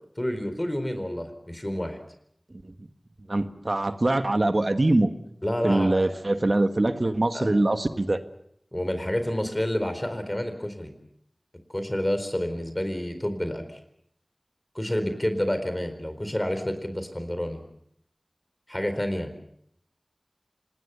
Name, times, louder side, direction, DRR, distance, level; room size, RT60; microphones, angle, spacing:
voice 1, 0.2-2.0 5.4-6.0 7.3-7.5 8.7-10.9 11.7-13.8 14.7-17.6 18.7-19.4, left 1 dB, 25° left, 9 dB, 4.2 m, -29 dB
voice 2, 3.3-5.1 5.6-8.2, right 2 dB, 60° right, 9 dB, 1.6 m, -23 dB
26.0 x 20.5 x 7.1 m, 0.69 s
wide cardioid pair, 40°, 0 cm